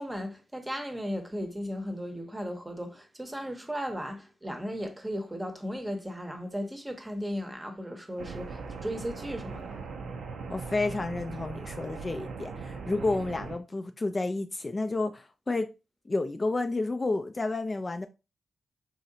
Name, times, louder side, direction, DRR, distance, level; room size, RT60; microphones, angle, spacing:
voice 1, 0.0-9.7, equal, 20° right, 0.8 m, -36 dB
Hovering terror, 8.2-13.6, right 4 dB, 80° right, 0.5 m, -39 dB
voice 2, 10.5-15.7 16.1-18.1, left 2 dB, 35° left, 0.3 m, -30 dB
3.1 x 2.7 x 2.6 m
supercardioid pair, 45°, 0 cm